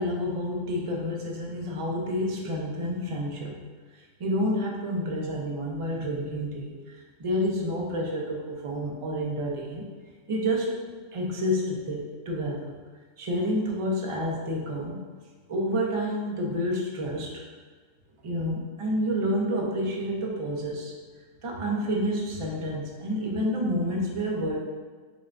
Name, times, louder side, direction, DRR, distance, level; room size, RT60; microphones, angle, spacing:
voice 1, 0.0-3.6 3.9-6.8 7.2-9.9 10.3-10.9 11.1-12.8 13.2-15.0 15.5-17.3 18.2-20.9 21.4-24.6, equal, 50° right, -1 dB, 0.3 m, -29 dB
6.0 x 2.2 x 2.5 m, 1.4 s
omnidirectional pair, 1.3 m